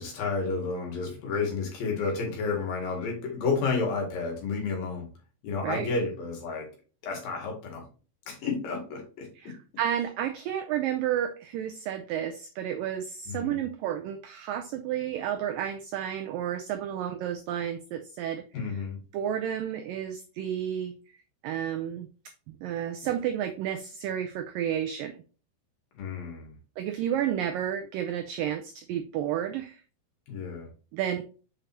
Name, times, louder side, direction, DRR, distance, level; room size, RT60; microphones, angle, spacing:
voice 1, 0.0-5.1 5.4-6.7 7.0-7.8 8.3-9.5 13.3-13.6 18.5-19.0 26.0-26.6 30.3-30.7, left 4 dB, 65° left, 0 dB, 3.6 m, -31 dB
voice 2, 9.4-18.4 19.1-21.0 21.4-22.1 22.6-25.2 26.8-29.8 30.9-31.2, right 10 dB, 85° right, 7 dB, 1.9 m, -31 dB
7.1 x 5.2 x 2.8 m, 0.35 s
omnidirectional pair, 4.7 m